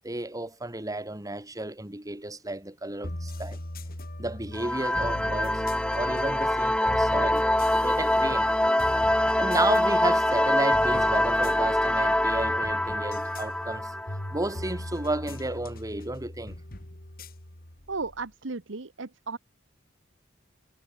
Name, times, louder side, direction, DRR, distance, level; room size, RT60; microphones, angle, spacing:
voice 1, 0.0-3.6 4.2-5.6 5.9-7.5 7.7-8.5 9.4-13.9 14.3-16.6, right 2 dB, 20° right, 2.8 m, -32 dB
sound 1, 3.0-18.3, left 1 dB, 50° left, 2.9 m, -39 dB
sound 2, 4.5-14.9, left 1 dB, 5° left, 2.1 m, -25 dB
voice 2, 17.9-19.4, right 3 dB, 70° right, 1.3 m, -35 dB
head